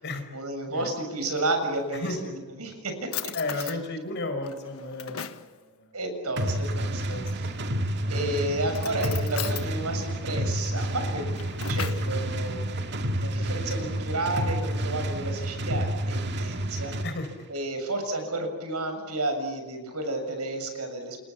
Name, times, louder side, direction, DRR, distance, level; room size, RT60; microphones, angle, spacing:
voice 1, 0.3-2.2 2.6-3.3 3.6-3.7 5.9-7.2 8.1-11.3 11.7-17.0 17.5-21.2, right 2 dB, 85° right, 6 dB, 7.1 m, -31 dB
Drawer open or close, 1.2-2.2 2.7-2.8 3.1-3.8 4.4-5.5 7.4-7.9 8.7-9.7 11.1-12.1, left 9 dB, 70° left, 1.5 m, -38 dB
voice 2, 1.9-2.3 3.3-5.9 6.8-7.7 17.0-17.5, left 2 dB, 50° left, 7 dB, 5.0 m, -34 dB
sound 1, 6.4-17.1, right 1 dB, 50° right, 2.1 m, -29 dB
29.5 x 27.5 x 7.2 m, 1.3 s
head